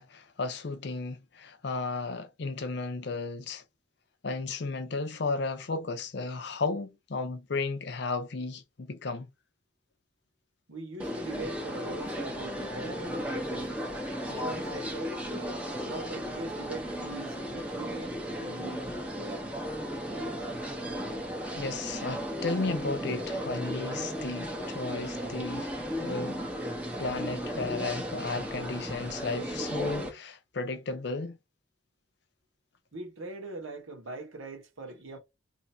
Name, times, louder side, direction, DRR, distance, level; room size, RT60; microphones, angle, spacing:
voice 1, 0.0-3.6 4.2-9.3 21.5-25.7 26.0-26.7 27.0-31.4, left 3 dB, 55° left, 0.5 m, -34 dB
voice 2, 10.7-13.7 14.3-15.2 15.8-18.9 32.9-35.2, right 2 dB, 85° right, 1.2 m, -41 dB
sound 1, 11.0-30.1, equal, 5° right, 0.7 m, -35 dB
2.8 x 2.5 x 4.2 m
head